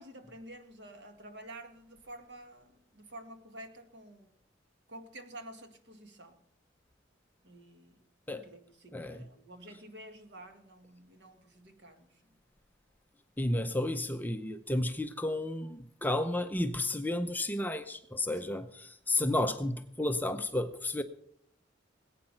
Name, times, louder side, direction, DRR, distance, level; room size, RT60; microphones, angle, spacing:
voice 1, 0.0-4.3 4.9-6.4 7.4-8.0 8.3-12.4 18.3-18.7, right 1 dB, 60° right, 6 dB, 1.8 m, -50 dB
voice 2, 8.9-9.2 13.4-21.0, left 1 dB, 10° left, 8 dB, 0.6 m, -32 dB
19.5 x 8.9 x 5.7 m, 0.70 s
head